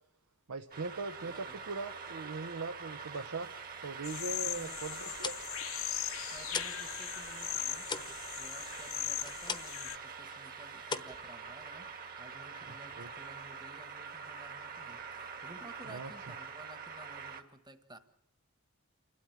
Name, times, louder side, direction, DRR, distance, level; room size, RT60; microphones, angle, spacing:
voice 1, 0.5-3.5 3.8-5.3 12.9-13.1 15.9-16.1, right 3 dB, 80° right, 7 dB, 0.8 m, -40 dB
sound 1, 0.7-17.4, right 5 dB, 40° right, 1.7 m, -45 dB
voice 2, 1.2-1.6 4.4-4.8 6.0-7.9 8.4-9.9 10.2-18.0, right 1 dB, 20° right, 10 dB, 1.3 m, -54 dB
sound 2, 4.0-10.0, left 12 dB, 60° left, 1.0 m, -39 dB
sound 3, 5.2-6.9 7.2-9.9 10.2-10.5 10.8-11.9, left 5 dB, 20° left, 1.0 m, -41 dB
28.5 x 12.5 x 7.3 m, 0.88 s
head